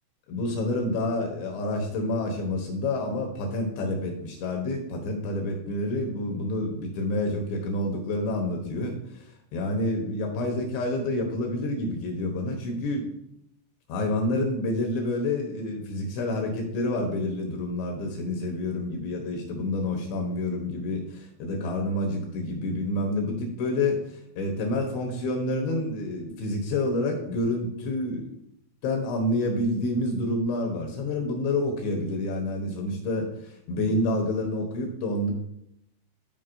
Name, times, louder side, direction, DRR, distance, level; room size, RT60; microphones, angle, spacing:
voice 1, 0.3-9.2 9.5-13.1 13.9-24.0 24.4-28.3 28.8-35.3, left 1 dB, 75° left, 1 dB, 3.1 m, -28 dB
12.5 x 5.1 x 2.6 m, 0.76 s
omnidirectional pair, 5.7 m